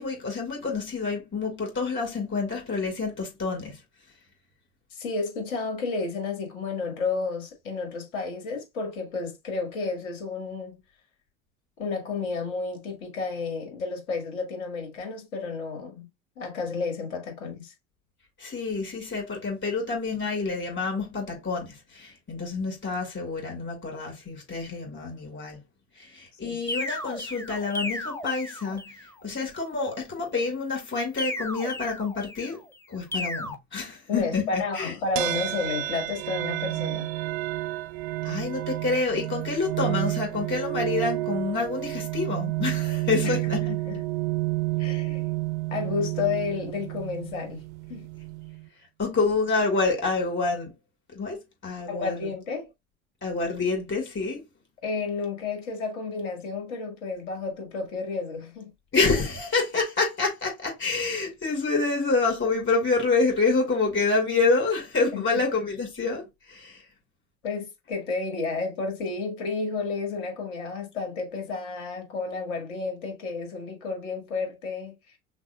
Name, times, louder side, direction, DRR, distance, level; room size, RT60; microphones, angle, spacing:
voice 1, 0.0-3.8 18.4-25.6 26.0-32.6 32.9-34.9 38.2-43.7 49.0-50.7 51.1-52.3 53.2-54.5 58.9-66.8, left 3 dB, 30° left, 2.2 m, -27 dB
voice 2, 4.9-10.8 11.8-16.1 16.4-17.7 26.4-26.7 34.1-37.1 43.2-43.3 43.7-44.0 44.8-45.3 45.7-47.6 47.9-48.1 51.9-52.7 54.8-58.7 65.1-65.2 67.4-75.0, left 4 dB, 65° left, 1.8 m, -31 dB
sound 1, 26.7-29.1 31.2-32.5 33.1-33.5, left 1 dB, 5° left, 0.6 m, -34 dB
sound 2, 35.2-48.7, right 20 dB, 45° right, 0.4 m, -30 dB
5.9 x 2.0 x 2.3 m
figure-of-eight pair, 70°, 41 cm